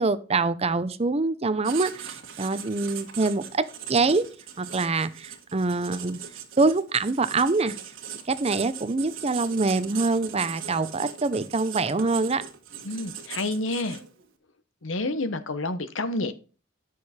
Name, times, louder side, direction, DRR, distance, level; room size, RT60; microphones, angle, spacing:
voice 1, 0.0-4.3 4.6-6.2 6.6-7.8 8.3-12.4, right 3 dB, 30° right, 0.7 m, -25 dB
Writing, 1.6-14.2, right 8 dB, 75° right, 1.7 m, -39 dB
voice 2, 12.8-14.0 14.8-16.3, left 2 dB, 70° left, 1.0 m, -29 dB
10.0 x 6.6 x 4.3 m
head